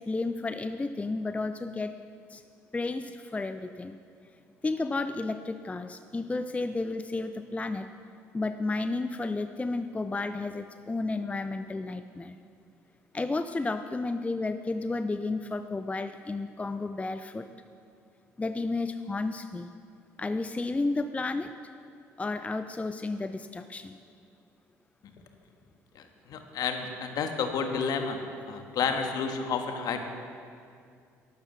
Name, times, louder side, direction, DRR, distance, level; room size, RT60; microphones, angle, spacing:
voice 1, 0.0-2.0 2.3-2.4 2.7-4.0 4.6-7.9 8.3-12.4 13.1-17.5 18.4-19.7 20.2-21.5 22.2-24.0, left 3 dB, 15° left, 9 dB, 0.5 m, -32 dB
voice 2, 26.3-28.2 28.5-30.1, left 6 dB, 55° left, 5 dB, 1.6 m, -30 dB
12.0 x 11.0 x 7.0 m, 2.4 s
hypercardioid pair, 55°, 8 cm